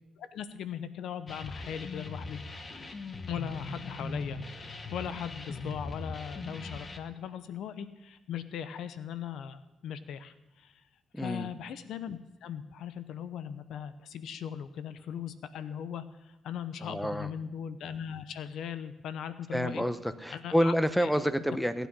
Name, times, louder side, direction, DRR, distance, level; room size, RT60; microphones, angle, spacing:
voice 1, 0.2-2.4 3.3-10.8 11.2-19.8 20.3-20.7 21.0-21.1, left 8 dB, 75° left, 13 dB, 0.7 m, -39 dB
sound 1, 1.3-7.0, left 3 dB, 35° left, 1.3 m, -40 dB
voice 2, 11.1-11.5 16.8-17.3 19.5-21.9, equal, 5° left, 12 dB, 0.9 m, -28 dB
17.5 x 9.1 x 5.5 m, 1.0 s
cardioid pair, 90°, 0 cm